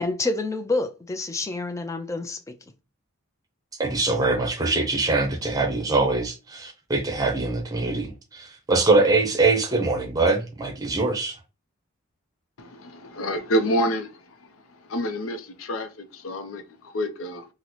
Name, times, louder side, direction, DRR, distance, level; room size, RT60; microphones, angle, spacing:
voice 1, 0.0-2.5, left 2 dB, 15° left, 0.3 m, -28 dB
voice 2, 3.8-11.4, right 3 dB, 20° right, 0.7 m, -23 dB
voice 3, 12.6-14.5 14.8-17.4, equal, 80° left, 0.5 m, -28 dB
3.9 x 2.0 x 2.9 m
head